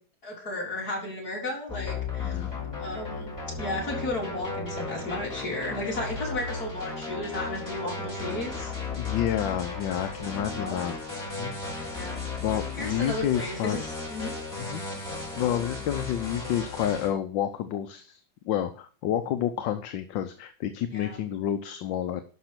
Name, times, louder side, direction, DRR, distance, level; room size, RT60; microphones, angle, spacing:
voice 1, 0.2-2.5 2.8-8.7 9.4-9.6 10.5-10.8 11.9-12.2 12.8-14.3 20.9-21.2, left 2 dB, 45° left, -2 dB, 4.2 m, -34 dB
sound 1, 1.7-17.1, left 4 dB, 10° left, 4.7 m, -35 dB
voice 2, 2.2-2.5 9.0-11.0 11.4-11.5 12.4-13.8 14.6-14.8 15.4-22.2, left 10 dB, 70° left, 9 dB, 1.4 m, -29 dB
12.0 x 5.9 x 6.0 m, 0.42 s
omnidirectional pair, 2.2 m